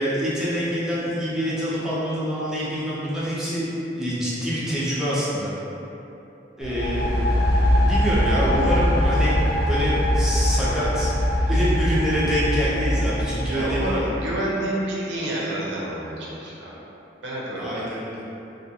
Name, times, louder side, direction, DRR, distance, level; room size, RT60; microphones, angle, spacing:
voice 1, 0.0-3.7 3.9-5.5 6.6-7.2 7.7-9.4 9.6-11.1 11.5-13.9 17.5-18.2, equal, 5° right, -9 dB, 0.6 m, -26 dB
sound 1, 6.6-14.4, left 1 dB, 65° left, 0.4 m, -22 dB
voice 2, 13.5-16.7 17.2-17.7, right 1 dB, 85° right, -5 dB, 0.6 m, -28 dB
2.6 x 2.6 x 2.8 m, 2.9 s
head